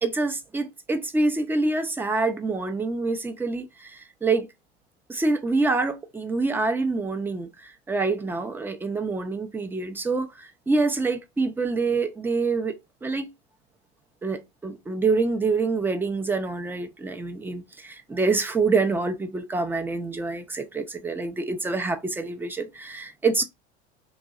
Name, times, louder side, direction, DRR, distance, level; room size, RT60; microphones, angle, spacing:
voice 1, 0.0-4.5 5.1-12.7 13.0-13.3 14.2-23.4, right 3 dB, 5° right, 0.3 m, -26 dB
3.1 x 2.6 x 2.3 m
hypercardioid pair, 85°, 34 cm